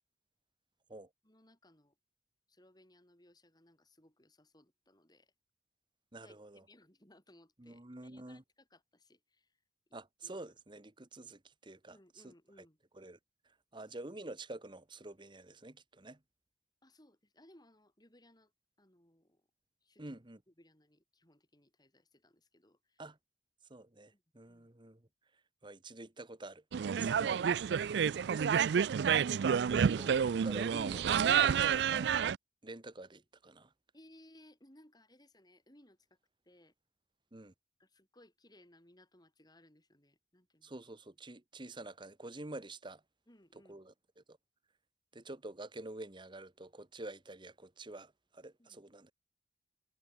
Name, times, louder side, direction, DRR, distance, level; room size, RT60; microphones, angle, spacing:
voice 1, 1.2-2.0 2.5-5.3 6.2-9.6 9.9-10.4 11.9-12.8 16.8-18.5 18.8-19.5 19.8-20.2 20.5-23.0 24.1-24.2 24.5-24.7 27.2-27.4 28.2-28.9 29.5-29.8 33.9-36.1 36.4-36.7 37.8-40.7 43.3-43.8 48.6-48.8, left 1 dB, 25° left, 5.8 m, -63 dB
voice 2, 6.1-6.6 7.6-8.4 9.9-12.6 12.9-13.2 13.4-16.2 20.0-20.4 23.0-23.2 23.7-25.1 25.6-26.6 27.0-27.3 29.8-30.1 30.4-32.1 32.6-33.7 37.3-37.5 40.6-43.0 43.7-44.4 45.1-49.1, right 2 dB, 25° right, 1.3 m, -48 dB
sound 1, 26.7-32.4, right 7 dB, 70° right, 0.4 m, -29 dB
head